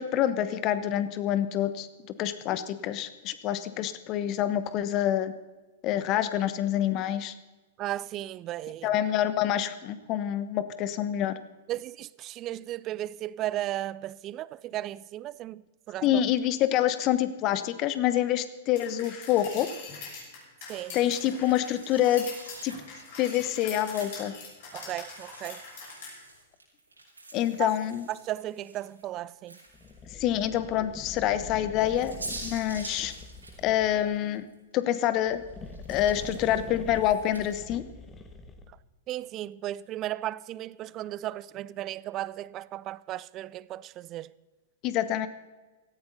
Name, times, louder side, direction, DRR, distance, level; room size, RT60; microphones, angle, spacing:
voice 1, 0.0-1.9 2.2-5.3 5.8-7.3 8.8-11.4 16.0-19.7 20.9-22.3 22.6-22.7 23.2-24.3 27.3-28.0 30.1-32.1 32.4-33.1 33.6-34.5 34.7-35.4 35.9-37.8 44.8-45.3, left 11 dB, 35° left, 1.1 m, -27 dB
voice 2, 7.8-9.0 11.7-16.2 20.7-21.0 24.7-25.6 27.6-27.7 28.1-29.6 39.1-44.3, right 14 dB, 35° right, 0.4 m, -35 dB
sound 1, 18.8-26.1, left 4 dB, 55° left, 6.2 m, -43 dB
sound 2, 21.0-24.4 24.9-30.1 30.5-30.6 31.5-34.6 34.9-37.6, right 2 dB, 90° right, 5.1 m, -46 dB
sound 3, 29.7-34.2 35.1-38.8, left 3 dB, 20° left, 1.5 m, -44 dB
17.0 x 14.5 x 4.1 m
figure-of-eight pair, 105°, 0 cm